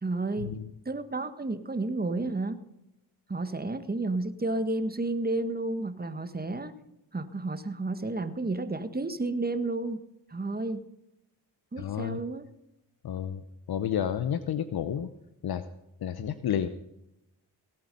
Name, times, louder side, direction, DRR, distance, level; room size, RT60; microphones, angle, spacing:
voice 1, 0.0-0.5 0.8-2.6 3.3-6.7 7.1-10.0 10.3-10.8 11.7-12.5, right 2 dB, 20° right, 10 dB, 1.6 m, -31 dB
voice 2, 11.8-12.2 13.0-13.4 13.7-15.1 15.4-15.6 16.0-16.7, left 9 dB, 65° left, 13 dB, 0.9 m, -30 dB
17.5 x 9.0 x 5.4 m, 0.87 s
supercardioid pair, 45°, 41 cm